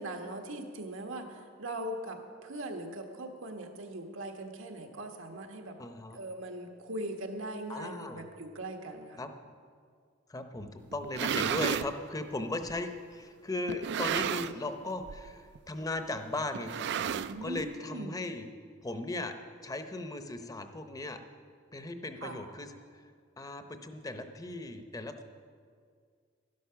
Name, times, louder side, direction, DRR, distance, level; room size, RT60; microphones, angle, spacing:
voice 1, 0.0-5.8 6.1-9.2 17.3-18.1 22.2-22.4, right 1 dB, 85° right, 4 dB, 1.4 m, -40 dB
voice 2, 5.8-6.2 7.7-8.2 9.2-9.3 10.3-18.4 18.8-19.4 19.6-21.2 21.7-22.7 23.4-25.2, left 2 dB, 20° left, 8 dB, 0.7 m, -37 dB
sound 1, 10.9-11.9 12.7-12.8 13.7-14.7 15.0-15.3 15.6-15.7 16.5-17.6, right 8 dB, 60° right, 0.4 m, -32 dB
12.0 x 11.5 x 5.7 m, 2.1 s
head